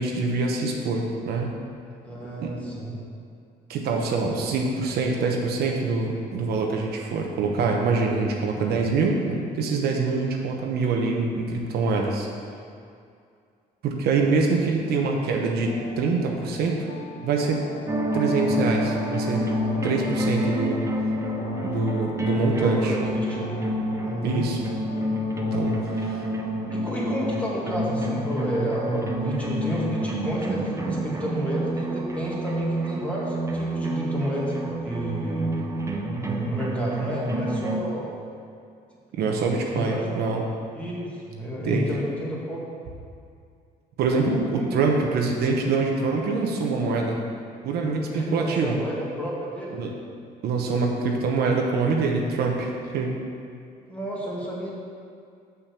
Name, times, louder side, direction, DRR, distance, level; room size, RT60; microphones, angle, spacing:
voice 1, 0.0-1.5 2.4-2.5 3.7-12.3 13.8-16.9 17.2-17.6 18.1-19.5 19.8-20.8 21.6-23.0 24.2-24.6 25.5-26.2 39.1-40.4 41.6-41.9 44.0-47.2 47.6-48.8 49.7-49.9 50.4-53.1, right 4 dB, 70° right, 0 dB, 1.1 m, -25 dB
voice 2, 2.0-3.0 22.5-23.6 24.0-24.4 26.7-35.6 36.1-38.2 39.2-39.4 39.7-40.1 40.7-42.7 44.6-44.7 48.1-49.8 53.9-54.7, equal, 10° left, -5 dB, 2.3 m, -31 dB
sound 1, 15.7-29.2, left 6 dB, 50° left, 0.6 m, -40 dB
sound 2, 17.9-37.8, right 1 dB, 15° right, 0.8 m, -28 dB
6.3 x 6.0 x 7.0 m, 2.3 s
cardioid pair, 110°, 17 cm